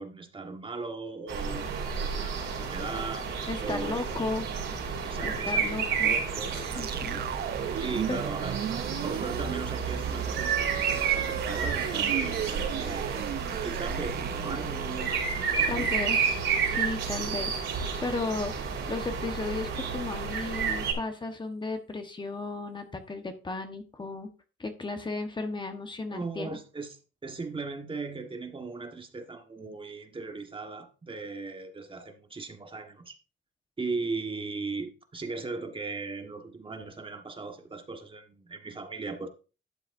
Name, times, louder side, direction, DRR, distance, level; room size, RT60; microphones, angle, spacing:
voice 1, 0.0-3.3 3.6-4.2 5.0-7.2 7.8-8.6 9.0-13.2 13.6-15.2 15.5-15.9 17.2-17.4 26.1-33.1 33.8-39.3, right 3 dB, 25° right, 1.4 m, -38 dB
sound 1, 1.3-20.9, right 6 dB, 80° right, 4.1 m, -31 dB
voice 2, 3.5-4.4 5.2-6.1 6.7-7.2 8.1-8.2 15.7-24.3 24.6-26.6, left 3 dB, 25° left, 1.2 m, -35 dB
sound 2, 6.7-16.9, right 10 dB, 55° right, 0.5 m, -36 dB
12.0 x 7.0 x 2.6 m
cardioid pair, 90°, 20 cm